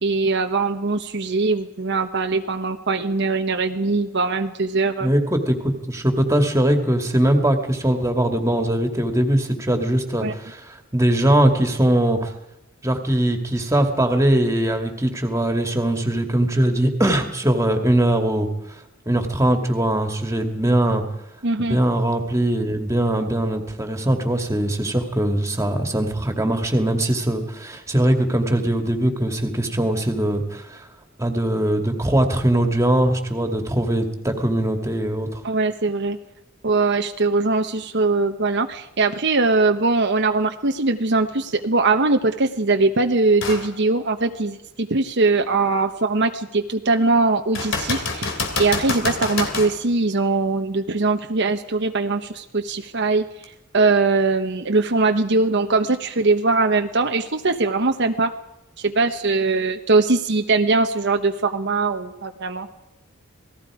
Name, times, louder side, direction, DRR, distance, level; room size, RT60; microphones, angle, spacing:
voice 1, 0.0-5.1 10.2-10.3 21.4-21.8 35.4-36.2 36.6-53.2 53.7-58.3 58.8-62.7, right 3 dB, 60° right, 5 dB, 1.1 m, -21 dB
voice 2, 5.0-12.3 12.8-18.5 19.1-21.0 21.6-30.9 31.2-35.4, right 1 dB, 15° right, 5 dB, 2.4 m, -21 dB
sound 1, 43.4-43.7 44.3-44.4 47.5-49.8 53.4-53.5, left 3 dB, 65° left, 3.3 m, -26 dB
27.5 x 19.0 x 5.0 m, 0.89 s
head